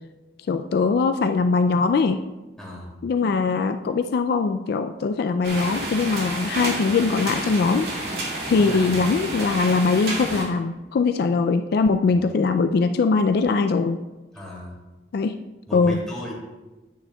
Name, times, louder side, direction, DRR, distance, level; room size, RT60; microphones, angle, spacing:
voice 1, 0.5-2.2 3.0-7.9 8.5-14.0 15.1-15.4 15.7-16.0, left 4 dB, 60° left, 8 dB, 0.3 m, -21 dB
voice 2, 2.6-2.9 8.5-8.9 12.0-12.2 14.3-14.8 15.7-16.3, left 1 dB, 5° left, -6 dB, 2.5 m, -36 dB
sound 1, 5.4-10.4, right 1 dB, 60° right, 2.0 m, -30 dB
10.0 x 9.0 x 2.3 m, 1.1 s
head